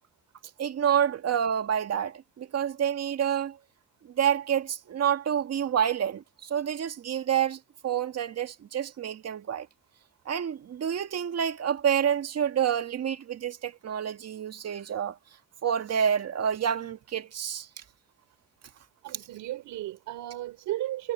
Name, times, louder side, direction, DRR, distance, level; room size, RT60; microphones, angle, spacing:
voice 1, 0.6-3.6 4.0-9.7 10.3-15.2 15.6-17.7, right 8 dB, 55° right, 2.0 m, -28 dB
voice 2, 19.0-21.1, right 14 dB, 90° right, 5.1 m, -34 dB
cardioid pair, 90°, 30 cm